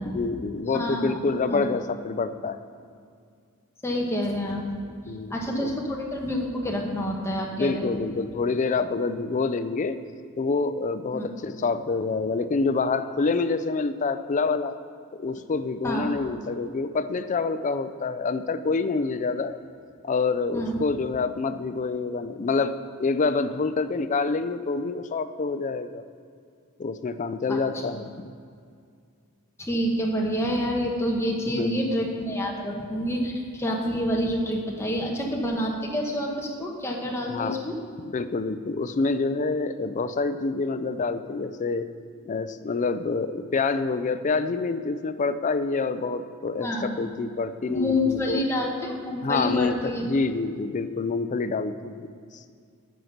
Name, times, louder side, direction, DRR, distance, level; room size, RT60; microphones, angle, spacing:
voice 1, 0.0-2.6 5.1-5.3 5.6-5.7 7.6-10.0 10.4-14.7 15.2-19.5 20.0-26.0 26.8-28.3 31.6-31.9 37.3-37.6 38.0-41.9 42.3-48.4 49.2-52.1, left 4 dB, 35° left, 11 dB, 0.4 m, -27 dB
voice 2, 0.7-1.2 1.5-1.7 3.8-4.6 5.3-7.9 11.1-11.2 15.8-16.1 20.5-20.8 27.5-27.6 27.9-28.0 29.6-37.8 46.6-47.0 47.7-50.0, equal, 10° left, -1 dB, 1.2 m, -28 dB
9.2 x 5.8 x 6.5 m, 2.3 s
head